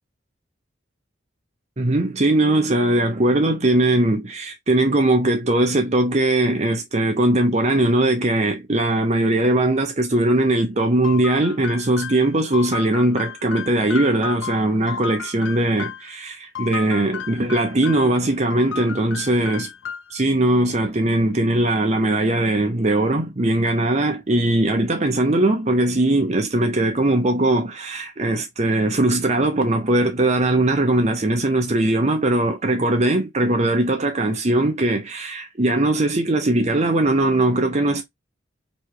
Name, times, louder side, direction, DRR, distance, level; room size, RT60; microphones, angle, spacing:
voice 1, 1.8-19.7 20.1-38.0, right 1 dB, 35° right, 0.7 m, -20 dB
sound 1, 11.0-16.1 16.5-18.2 18.5-20.2, left 8 dB, 90° left, 0.5 m, -34 dB
3.2 x 3.2 x 4.8 m
head